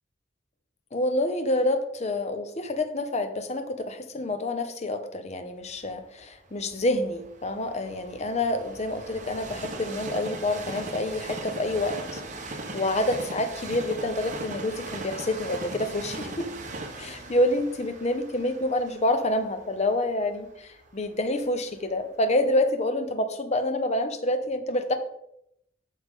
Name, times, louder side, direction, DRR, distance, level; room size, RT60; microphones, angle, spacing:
voice 1, 0.9-16.5 17.0-25.0, left 1 dB, 35° left, 8 dB, 0.8 m, -27 dB
Train, 5.8-21.8 22.4-22.5, right 2 dB, 40° right, 1.1 m, -39 dB
8.2 x 6.5 x 3.7 m, 0.76 s
head